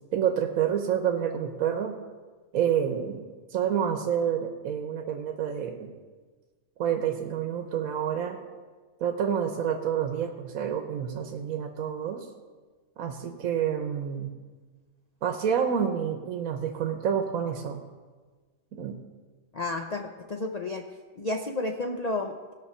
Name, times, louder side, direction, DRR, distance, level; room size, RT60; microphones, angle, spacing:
voice 1, 0.1-2.0 2.5-3.2 3.5-5.9 6.8-8.4 9.0-12.2 13.0-14.3 15.2-17.8 18.7-19.0, right 8 dB, 80° right, 4 dB, 1.3 m, -28 dB
voice 2, 19.5-20.8 21.2-22.5, left 2 dB, 45° left, 3 dB, 0.5 m, -31 dB
17.0 x 6.3 x 5.5 m, 1.4 s
omnidirectional pair, 1.4 m